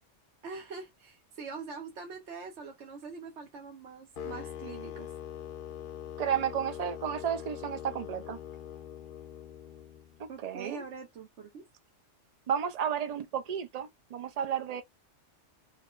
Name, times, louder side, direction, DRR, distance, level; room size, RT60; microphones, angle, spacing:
voice 1, 0.4-5.1 10.3-11.7, right 5 dB, 70° right, 1.1 m, -43 dB
sound 1, 4.2-10.2, left 9 dB, 55° left, 0.7 m, -43 dB
voice 2, 6.2-8.4 10.2-10.8 12.5-14.8, right 8 dB, 45° right, 0.5 m, -32 dB
3.9 x 2.1 x 3.7 m
omnidirectional pair, 1.3 m